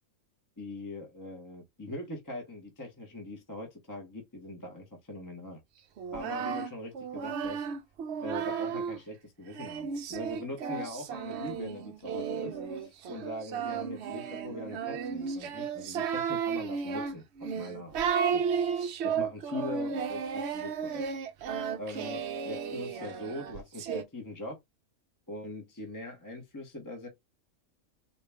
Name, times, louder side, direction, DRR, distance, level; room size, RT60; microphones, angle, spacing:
voice 1, 0.6-5.6 6.1-7.7 8.2-18.0 18.3-21.0 21.8-22.2 22.4-24.6 25.3-27.1, left 1 dB, 15° left, 0.8 m, -42 dB
Singing, 6.0-9.0 9.5-24.0, right 6 dB, 65° right, 0.8 m, -33 dB
4.2 x 2.3 x 3.3 m
omnidirectional pair, 1.4 m